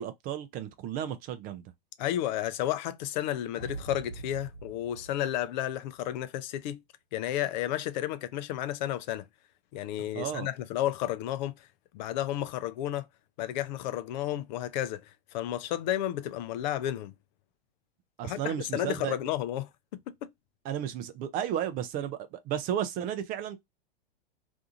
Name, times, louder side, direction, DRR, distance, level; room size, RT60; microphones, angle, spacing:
voice 1, 0.0-1.6 10.1-10.5 18.2-19.2 20.6-23.6, right 10 dB, 30° right, 0.4 m, -33 dB
voice 2, 2.0-6.8 7.1-9.3 9.7-11.7 11.9-13.1 13.4-17.1 18.2-19.7 20.2-20.3, left 12 dB, 50° left, 0.4 m, -32 dB
sound 1, 3.5-6.0, right 2 dB, 90° left, 0.8 m, -43 dB
2.6 x 2.3 x 2.7 m
hypercardioid pair, 110°, 29 cm